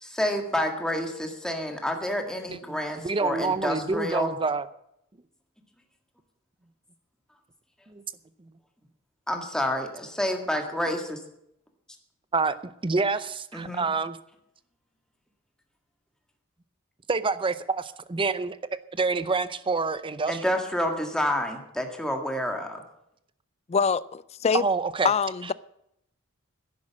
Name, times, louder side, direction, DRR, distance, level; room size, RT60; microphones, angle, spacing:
voice 1, 0.0-4.3 9.3-11.2 13.5-13.9 20.3-22.8, left 1 dB, 5° left, 1.8 m, -29 dB
voice 2, 2.5-4.7 7.9-8.0 12.3-14.2 17.1-18.6 18.9-20.6 24.5-25.1, right 4 dB, 25° right, 0.6 m, -27 dB
voice 3, 23.7-24.6 25.0-25.5, left 6 dB, 30° left, 0.4 m, -24 dB
10.5 x 10.5 x 7.4 m
head